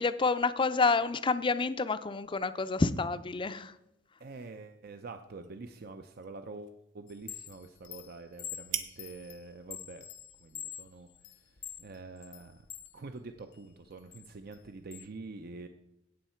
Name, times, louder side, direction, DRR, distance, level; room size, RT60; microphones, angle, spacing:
voice 1, 0.0-3.8, left 4 dB, 25° left, 12 dB, 0.5 m, -28 dB
voice 2, 4.2-10.1 10.4-12.7 12.9-15.7, right 3 dB, 55° right, 7 dB, 0.6 m, -46 dB
sound 1, 4.4-12.1, right 10 dB, 80° right, 1.0 m, -47 dB
Chime, 7.1-12.9 13.4-15.0, left 10 dB, 80° left, 0.7 m, -46 dB
17.0 x 6.5 x 4.4 m, 0.88 s
head